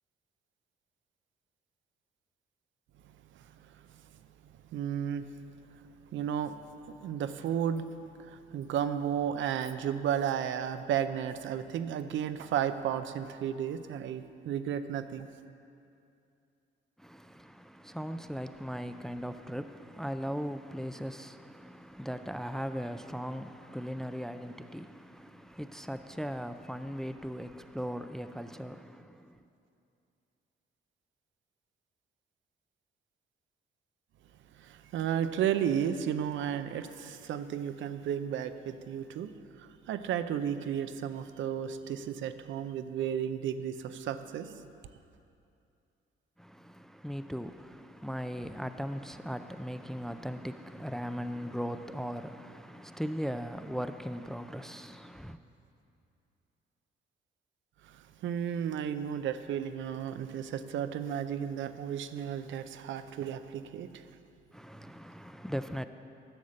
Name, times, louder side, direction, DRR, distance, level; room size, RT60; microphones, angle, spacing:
voice 1, 4.7-5.3 6.1-6.6 6.9-7.9 8.2-15.3 34.6-44.6 57.8-64.1, right 9 dB, 75° right, 0.6 m, -33 dB
voice 2, 17.0-29.4 46.4-55.4 64.5-65.9, equal, ahead, 0.4 m, -38 dB
11.5 x 7.2 x 6.4 m
cardioid pair, 90°, 20 cm